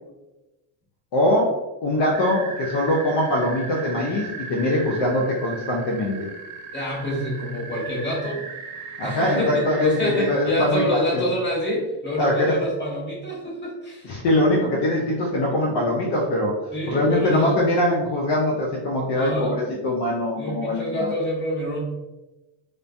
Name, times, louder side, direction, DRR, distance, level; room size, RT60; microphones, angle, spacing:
voice 1, 1.1-6.2 9.0-11.3 12.2-12.6 14.0-16.6 16.9-21.1, left 1 dB, 60° left, -3 dB, 0.7 m, -22 dB
sound 1, 2.1-10.3, right 4 dB, 45° right, 0.5 m, -37 dB
voice 2, 6.7-8.4 9.0-14.1 16.7-17.6 19.1-19.6 20.4-21.8, left 1 dB, 20° left, -5 dB, 1.3 m, -26 dB
3.1 x 2.1 x 2.5 m, 1.1 s
cardioid pair, 90°, 48 cm